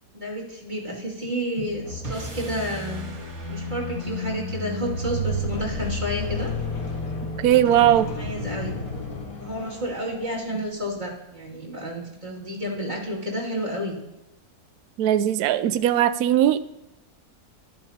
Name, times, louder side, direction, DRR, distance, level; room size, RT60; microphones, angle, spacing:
voice 1, 0.1-3.1 3.5-6.5 8.2-8.8 9.4-14.0, equal, 25° right, 2.5 m, -30 dB
sound 1, 1.6-10.4, left 2 dB, 60° left, 2.1 m, -32 dB
sound 2, 2.0-8.4, right 3 dB, 45° right, 1.5 m, -44 dB
voice 2, 7.4-8.1 15.0-16.6, right 11 dB, 70° right, 1.0 m, -19 dB
13.5 x 12.0 x 2.8 m
omnidirectional pair, 1.7 m